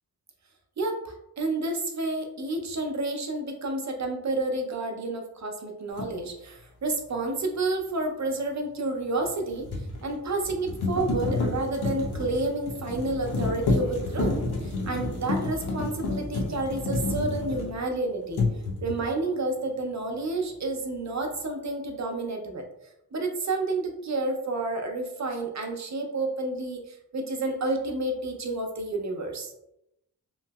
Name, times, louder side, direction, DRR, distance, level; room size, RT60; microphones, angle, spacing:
voice 1, 0.8-18.4 18.8-22.6 23.1-29.5, right 2 dB, 45° right, 2 dB, 0.6 m, -30 dB
sound 1, 6.0-6.1 9.2-18.0 18.3-19.1, left 3 dB, 85° left, 0.8 m, -30 dB
3.0 x 2.7 x 2.3 m, 0.83 s
wide cardioid pair, 70°, 38 cm